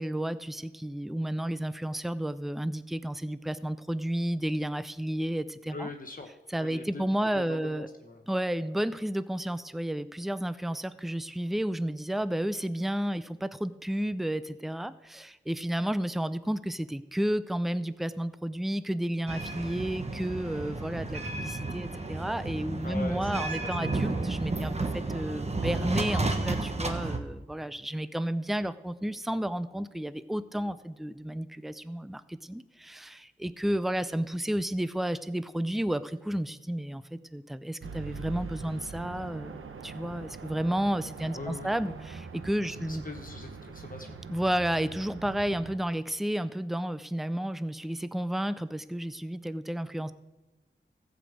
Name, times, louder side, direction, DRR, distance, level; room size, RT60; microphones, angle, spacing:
voice 1, 0.0-5.9 6.5-7.9 8.3-43.0 44.3-50.1, right 1 dB, ahead, 14 dB, 0.5 m, -32 dB
voice 2, 5.7-6.3 6.6-7.0 7.3-8.3 22.8-24.1 41.3-41.7 42.5-44.3, left 3 dB, 40° left, 4 dB, 1.0 m, -42 dB
sound 1, 19.3-27.2, right 2 dB, 30° right, 1.2 m, -32 dB
sound 2, 37.8-45.8, right 5 dB, 80° right, 0.9 m, -43 dB
14.5 x 5.2 x 7.8 m, 1.1 s
wide cardioid pair, 70°, 21 cm